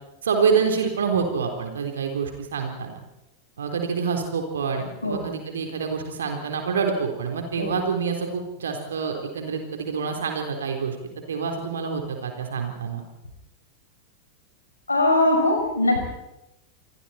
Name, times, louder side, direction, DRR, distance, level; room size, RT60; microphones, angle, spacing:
voice 1, 0.2-3.0 3.6-11.0 11.3-13.0, right 5 dB, 65° right, 4 dB, 3.8 m, -27 dB
voice 2, 14.9-16.0, left 2 dB, 80° left, 3 dB, 5.9 m, -20 dB
29.5 x 24.5 x 4.4 m, 0.94 s
figure-of-eight pair, 90°, 0 cm